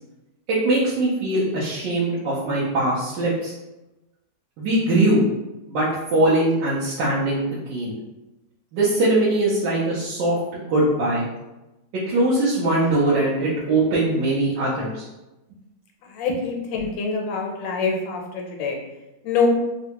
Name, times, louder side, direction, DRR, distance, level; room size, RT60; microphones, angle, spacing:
voice 1, 0.5-3.5 4.6-5.2 5.7-7.4 7.7-7.9 8.7-11.2 12.1-15.0, right 2 dB, 80° right, -8 dB, 1.4 m, -21 dB
voice 2, 16.1-18.8 19.2-19.5, left 5 dB, 85° left, 1 dB, 1.3 m, -25 dB
3.6 x 2.1 x 2.9 m, 1.0 s
omnidirectional pair, 1.9 m